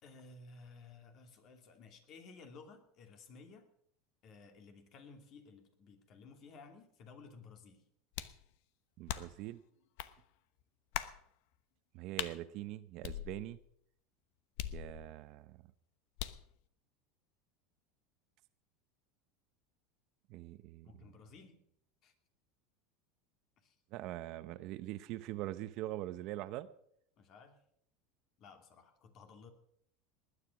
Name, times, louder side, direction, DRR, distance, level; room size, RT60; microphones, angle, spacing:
voice 1, 0.0-3.7 4.2-7.8 20.8-21.6 22.0-22.1 23.6-23.8 27.2-27.6 28.4-29.5, left 4 dB, 45° left, 6 dB, 2.7 m, -56 dB
sound 1, 8.1-8.4 9.1-9.5 10.0-10.1 10.9-11.2 12.2-12.4 13.0-13.7 14.6-15.3 16.2-16.5, left 12 dB, 70° left, 1.0 m, -41 dB
voice 2, 9.0-9.6 11.9-13.6 14.7-15.6 20.3-21.1 23.9-26.7, right 15 dB, 55° right, 13 dB, 0.9 m, -43 dB
19.5 x 9.9 x 6.0 m, 0.69 s
supercardioid pair, 125°, 0 cm